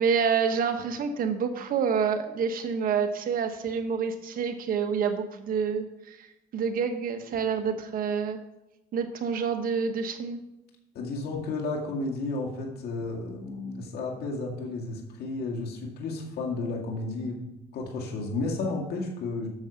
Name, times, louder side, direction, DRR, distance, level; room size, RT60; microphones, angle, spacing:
voice 1, 0.0-6.3 6.5-8.4 8.9-10.4, right 6 dB, 55° right, 7 dB, 1.2 m, -28 dB
voice 2, 10.9-17.4 17.7-19.5, left 3 dB, 70° left, 0 dB, 2.1 m, -32 dB
9.5 x 6.4 x 5.8 m, 0.91 s
cardioid pair, 110°, 17 cm